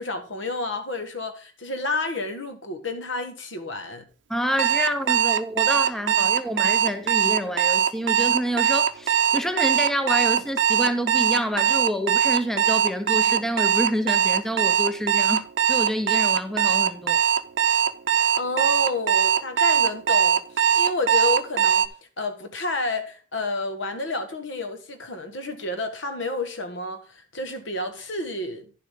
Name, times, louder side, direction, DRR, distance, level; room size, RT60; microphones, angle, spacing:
voice 1, 0.0-4.1 18.3-21.9 22.2-28.6, left 2 dB, 70° left, 1.6 m, -30 dB
voice 2, 4.3-17.2, equal, ahead, 0.6 m, -28 dB
Alarm, 4.6-21.9, right 8 dB, 70° right, 0.6 m, -21 dB
11.0 x 7.3 x 3.7 m
head